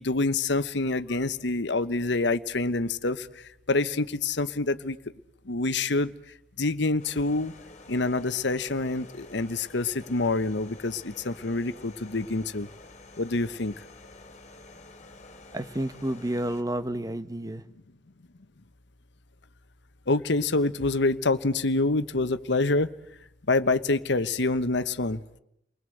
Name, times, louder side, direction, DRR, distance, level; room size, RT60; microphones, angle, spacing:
voice 1, 0.0-3.3 3.7-5.0 5.5-6.1 6.6-7.5 7.9-12.7 13.2-13.7 20.1-22.9 23.5-25.2, left 2 dB, 70° left, 1.1 m, -26 dB
sound 1, 7.0-16.6, left 2 dB, 40° left, 2.9 m, -49 dB
voice 2, 15.5-17.6, right 1 dB, 20° right, 1.1 m, -30 dB
29.5 x 21.0 x 7.8 m
head